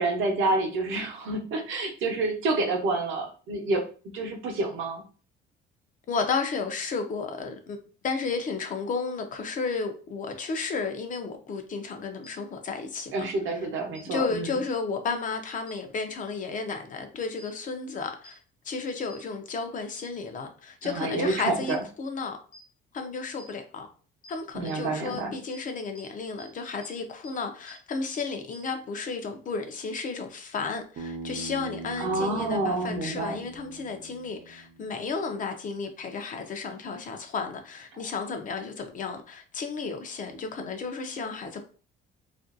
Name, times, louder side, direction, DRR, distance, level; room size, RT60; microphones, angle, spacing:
voice 1, 0.0-3.8 4.1-5.0 13.1-14.6 20.8-21.8 24.5-25.3 32.0-33.4, right 2 dB, 70° right, 0.7 m, -28 dB
voice 2, 6.1-7.8 8.0-13.3 14.1-18.4 18.6-22.4 22.9-23.9 24.3-41.6, left 4 dB, 40° left, 0.4 m, -33 dB
sound 1, 12.2-12.3 13.9-14.0 15.7-15.8 17.4-17.5 18.2-18.3 19.1-19.2 19.9-20.0 20.8-20.9 21.7-21.8 22.5-22.6 23.4-23.5 24.2-24.3 24.7-24.8 25.1-25.2 25.5-25.6 25.9-26.0 26.4-26.5 26.8-26.9 27.2-27.3 27.7-27.8 28.1-28.2 28.5-28.6, left 1 dB, 85° left, 1.0 m, -48 dB
Bass guitar, 31.0-35.2, right 3 dB, 45° right, 0.4 m, -41 dB
2.5 x 2.2 x 2.5 m
cardioid pair, 135°, 21 cm